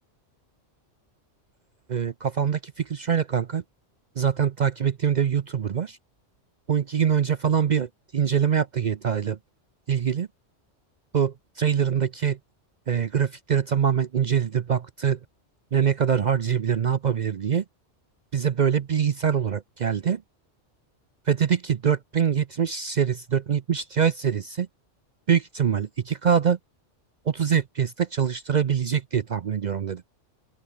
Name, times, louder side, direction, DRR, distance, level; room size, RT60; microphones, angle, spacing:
voice 1, 1.9-3.6 4.2-6.0 6.7-9.4 9.9-10.3 11.1-12.4 12.9-15.2 15.7-17.6 18.3-20.2 21.3-24.7 25.3-26.6 27.3-30.0, right 7 dB, 50° right, 0.6 m, -24 dB
open air
omnidirectional pair, 1.3 m